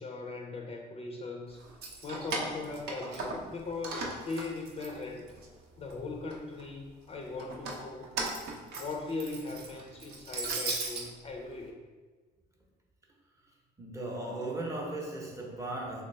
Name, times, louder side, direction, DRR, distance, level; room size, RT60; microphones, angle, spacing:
voice 1, 0.0-1.6 2.0-5.3 5.8-8.1 8.8-11.8, left 3 dB, 35° left, 1 dB, 0.5 m, -39 dB
Keys jangling, 1.6-3.6 3.8-5.5 5.9-6.6 7.4-11.1, right 3 dB, 75° right, 0.7 m, -37 dB
voice 2, 13.8-16.0, right 2 dB, 20° right, -1 dB, 0.7 m, -37 dB
3.3 x 2.9 x 3.2 m, 1.4 s
cardioid pair, 110°, 17 cm